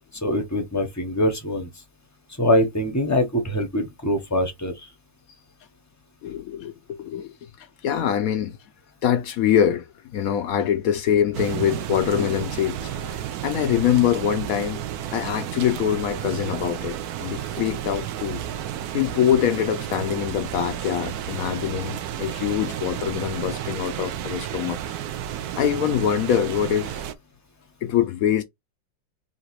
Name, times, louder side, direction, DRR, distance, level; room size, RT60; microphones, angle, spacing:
voice 1, 0.2-1.7 2.4-4.9, left 1 dB, 20° left, 0.4 m, -23 dB
voice 2, 6.2-8.6 9.0-14.8 15.1-18.4 18.9-24.9 25.5-27.0 27.8-28.4, left 9 dB, 80° left, 0.8 m, -24 dB
sound 1, 11.3-27.1, right 11 dB, 70° right, 0.9 m, -32 dB
3.8 x 2.8 x 4.5 m
omnidirectional pair, 2.0 m